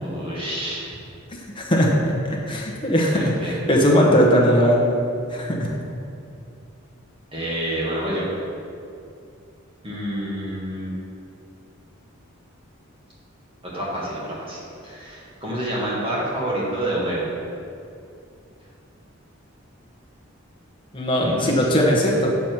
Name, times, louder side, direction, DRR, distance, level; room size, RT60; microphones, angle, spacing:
voice 1, 0.0-0.9 3.1-3.6 7.3-8.3 9.8-10.9 13.6-17.3 21.2-21.6 21.9-22.0, right 1 dB, 25° right, -6 dB, 2.0 m, -28 dB
voice 2, 1.6-2.1 2.5-3.2 3.7-4.8 5.3-5.7 20.9-22.3, equal, 25° left, -2 dB, 1.2 m, -18 dB
7.3 x 7.1 x 4.6 m, 2.5 s
head